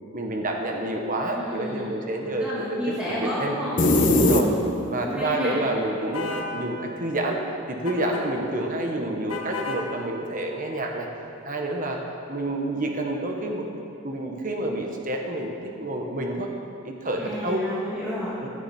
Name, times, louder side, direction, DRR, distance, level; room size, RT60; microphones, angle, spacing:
voice 1, 0.1-3.6 4.1-4.5 4.9-7.4 7.7-11.1 11.4-12.0 12.3-13.7 14.0-16.5 16.8-17.7 18.4-18.5, right 1 dB, 40° right, 1 dB, 1.3 m, -28 dB
voice 2, 1.3-3.9 4.2-4.6 5.0-5.6 17.2-18.4, left 1 dB, 5° right, -10 dB, 2.0 m, -32 dB
sound 1, 3.8-5.0, left 2 dB, 40° left, 0.9 m, -19 dB
sound 2, 6.1-6.5 7.9-8.2 9.3-9.8, left 3 dB, 80° left, 1.8 m, -32 dB
15.5 x 11.0 x 4.4 m, 2.6 s
head